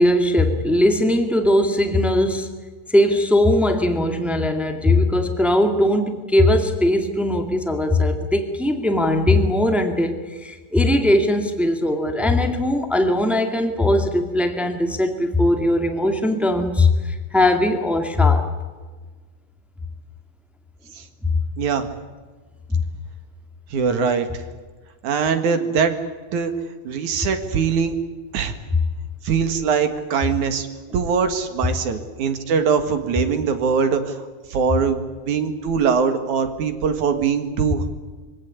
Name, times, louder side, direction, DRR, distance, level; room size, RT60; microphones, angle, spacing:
voice 1, 0.0-2.5 2.9-18.5 21.2-21.3 22.7-22.8, left 1 dB, ahead, 5 dB, 0.4 m, -19 dB
voice 2, 21.6-21.9 23.7-24.4 25.0-25.9 26.3-26.5 26.8-28.0 28.3-28.5 29.2-30.7 30.9-37.9, right 6 dB, 55° right, 8 dB, 2.9 m, -22 dB
24.5 x 17.5 x 9.7 m, 1.4 s
omnidirectional pair, 4.5 m